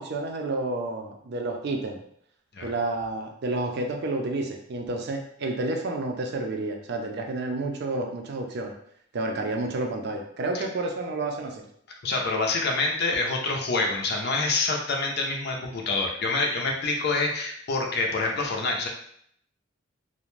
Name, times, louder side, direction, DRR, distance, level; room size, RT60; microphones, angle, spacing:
voice 1, 0.0-2.0 2.6-8.7 9.1-11.6, right 2 dB, 55° right, 3 dB, 0.4 m, -30 dB
voice 2, 12.0-18.9, left 3 dB, 55° left, 1 dB, 0.5 m, -26 dB
2.5 x 2.1 x 3.1 m, 0.67 s
head